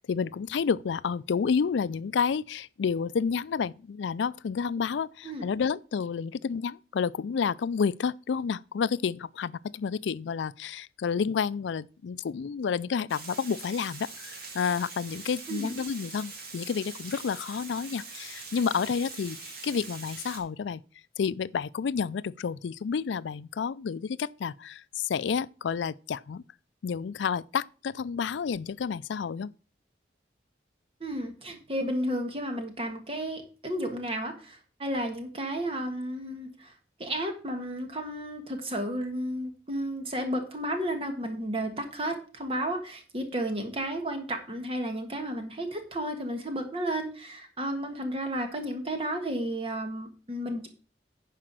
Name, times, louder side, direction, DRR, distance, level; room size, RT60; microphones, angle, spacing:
voice 1, 0.1-20.8 21.2-26.4 26.8-29.5, left 6 dB, 75° left, 0.4 m, -30 dB
Water, 13.1-20.4, right 4 dB, 55° right, 2.4 m, -43 dB
voice 2, 31.0-36.7 37.0-50.7, right 1 dB, 30° right, 1.4 m, -32 dB
10.5 x 5.0 x 6.1 m
head